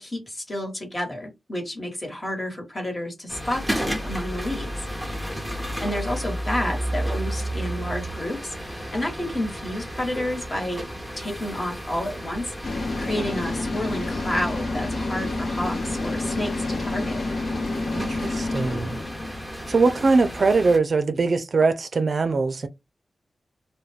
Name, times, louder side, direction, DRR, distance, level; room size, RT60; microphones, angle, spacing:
voice 1, 0.0-4.7 5.0-5.1 5.8-10.8 11.2-17.2, left 1 dB, 30° left, 1.3 m, -30 dB
sound 1, 3.3-20.8, equal, 5° left, 0.8 m, -33 dB
sound 2, 12.6-20.6, left 2 dB, 75° left, 0.8 m, -29 dB
voice 2, 17.9-19.0 19.7-22.7, right 4 dB, 60° right, 0.4 m, -21 dB
2.3 x 2.2 x 3.3 m
wide cardioid pair, 75°, 0 cm